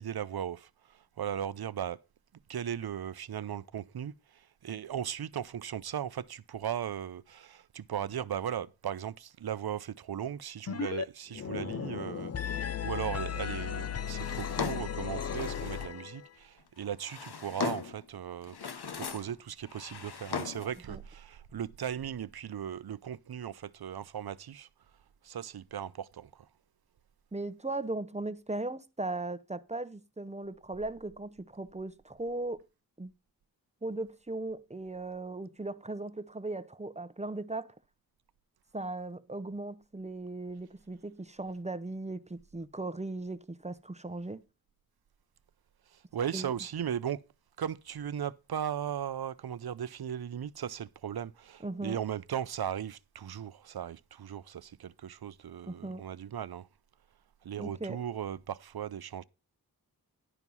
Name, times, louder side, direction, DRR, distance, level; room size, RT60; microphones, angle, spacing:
voice 1, 0.0-2.0 2.5-24.7 25.2-26.5 45.9-47.2 47.6-56.7 57.4-59.2, right 9 dB, 75° right, 0.5 m, -37 dB
sound 1, 10.7-11.0 11.3-16.3, left 8 dB, 40° left, 0.5 m, -36 dB
Drawer open or close, 14.1-16.0 16.8-18.0 18.4-19.4 19.6-20.8, left 6 dB, 85° left, 0.9 m, -38 dB
voice 2, 27.3-32.6 33.0-33.1 33.8-37.7 38.7-44.4 46.3-46.5 51.6-52.0 55.7-56.0 57.6-58.0, right 2 dB, 15° right, 0.8 m, -38 dB
11.0 x 4.5 x 5.4 m
wide cardioid pair, 40°, 38 cm